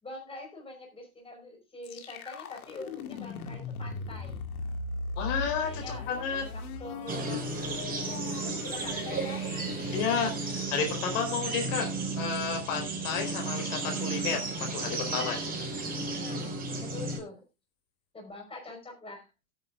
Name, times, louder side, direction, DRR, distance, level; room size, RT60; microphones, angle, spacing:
voice 1, 0.0-4.4 5.5-6.2 6.5-7.4 7.8-9.4 15.9-16.5 16.8-17.4 18.1-19.3, left 2 dB, 15° left, 1 dB, 5.2 m, -45 dB
sound 1, 1.8-11.7, left 4 dB, 80° left, 2.1 m, -39 dB
voice 2, 5.2-6.4 9.9-11.9 12.2-14.4 14.7-15.4, left 6 dB, 60° left, 4 dB, 4.1 m, -31 dB
sound 2, 7.1-17.2, right 3 dB, 20° right, 5.2 m, -34 dB
17.0 x 9.2 x 2.4 m, 0.25 s
hypercardioid pair, 115°, 43 cm